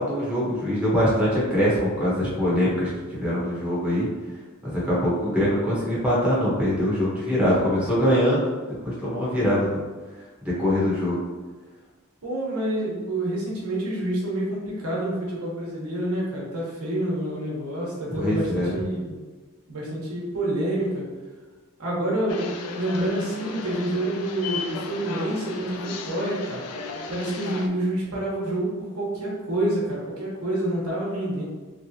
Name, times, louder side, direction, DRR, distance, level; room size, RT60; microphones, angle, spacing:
voice 1, 0.0-4.1 4.6-8.5 8.8-9.8 10.4-11.2 18.1-18.8, equal, 5° right, -8 dB, 0.9 m, -23 dB
voice 2, 12.2-19.2 19.7-21.0 21.8-26.6 27.1-31.4, right 1 dB, 85° right, -4 dB, 1.1 m, -28 dB
sound 1, 22.3-27.7, left 4 dB, 85° left, 0.4 m, -35 dB
3.3 x 3.0 x 2.7 m, 1.3 s
head